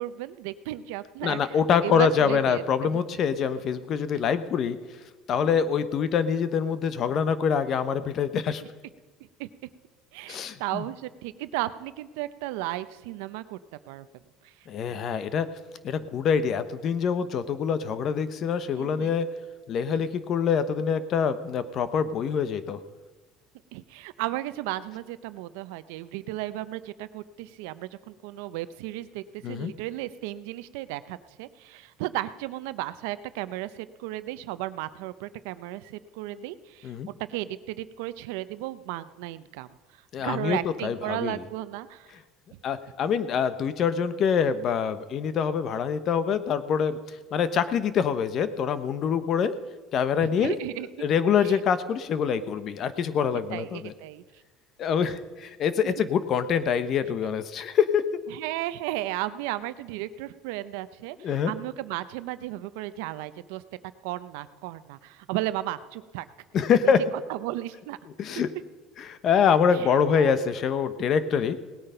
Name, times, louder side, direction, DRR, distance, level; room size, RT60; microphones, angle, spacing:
voice 1, 0.0-1.6 1.8-3.0 5.4-5.5 8.6-8.7 9.4-9.5 10.1-13.6 13.9-14.1 14.4-14.5 14.9-15.0 18.7-19.2 19.9-20.0 23.7-36.9 37.3-39.7 39.9-42.1 50.2-51.0 51.4-51.6 53.5-54.2 55.8-55.9 58.3-63.6 64.0-66.3 66.8-66.9 67.3-68.0 68.4-68.5 69.7-70.5, right 15 dB, 90° right, 14 dB, 0.6 m, -34 dB
voice 2, 1.2-4.8 5.3-8.6 10.3-10.8 14.7-15.5 15.8-19.3 19.7-22.8 29.4-29.7 36.8-37.1 40.1-41.4 42.6-49.5 49.9-50.6 51.0-53.9 54.8-58.0 61.2-61.5 66.5-67.0 68.2-68.5 69.0-71.6, left 7 dB, 45° left, 13 dB, 0.9 m, -25 dB
18.0 x 8.8 x 5.6 m, 1.3 s
cardioid pair, 130°, 0 cm